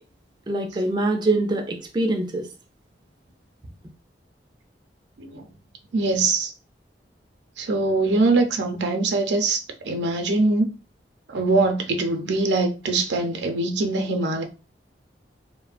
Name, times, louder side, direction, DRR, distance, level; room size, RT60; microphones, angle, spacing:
voice 1, 0.5-2.5, right 2 dB, 25° right, 0.3 m, -24 dB
voice 2, 5.9-6.5 7.6-10.7 11.3-14.4, right 3 dB, 80° right, 0.5 m, -23 dB
3.0 x 2.1 x 2.4 m
head